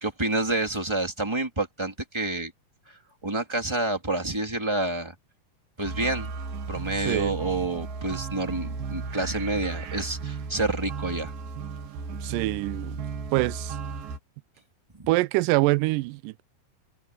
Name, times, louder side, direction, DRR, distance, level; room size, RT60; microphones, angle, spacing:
voice 1, 0.0-2.5 2.9-5.1 5.8-6.3 6.7-11.3 14.9-15.1, right 2 dB, 10° right, 1.9 m, -28 dB
sound 1, 5.8-14.2, right 5 dB, 65° right, 3.5 m, -35 dB
voice 2, 7.1-7.4 12.2-13.0 13.3-13.8 15.1-16.4, right 20 dB, 85° right, 1.9 m, -25 dB
open air
omnidirectional pair, 4.4 m